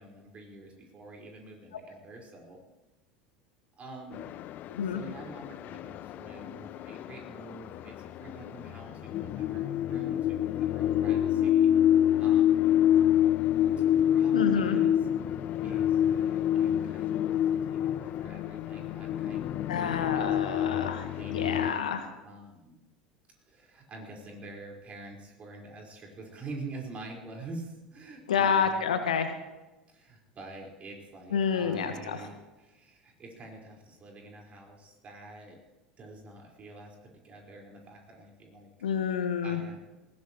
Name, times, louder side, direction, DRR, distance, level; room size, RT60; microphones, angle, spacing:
voice 1, 0.0-2.6 3.8-4.5 4.8-11.7 12.2-12.7 13.9-20.9 21.2-21.8 22.2-22.8 23.5-28.8 29.9-35.6 36.0-38.7 39.4-39.8, right 2 dB, 35° right, 0 dB, 4.7 m, -46 dB
sound 1, 4.1-21.7, left 11 dB, 45° left, 0.5 m, -27 dB
voice 2, 4.7-5.0 14.3-14.8 19.7-22.0 28.3-29.3 31.3-32.2 38.8-39.6, left 7 dB, 75° left, 7 dB, 1.4 m, -28 dB
20.0 x 17.0 x 3.1 m, 1.1 s
figure-of-eight pair, 75°, 4 cm